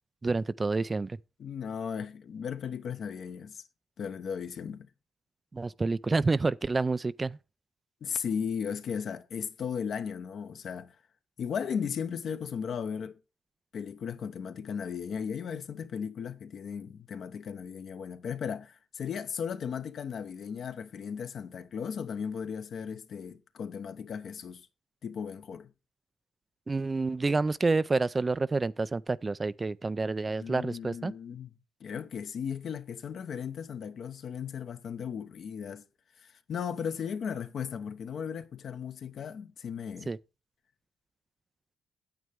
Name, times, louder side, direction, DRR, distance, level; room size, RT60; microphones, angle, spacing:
voice 1, 0.2-1.2 5.5-7.4 26.7-31.1 40.1-40.2, right 3 dB, 25° right, 0.4 m, -28 dB
voice 2, 1.4-3.6 4.0-4.9 8.0-11.0 11.4-13.2 13.7-24.7 25.0-25.7 30.2-31.5 31.8-35.8 36.2-40.1, left 7 dB, 60° left, 1.0 m, -36 dB
9.3 x 8.1 x 3.5 m
cardioid pair, 90°, 0 cm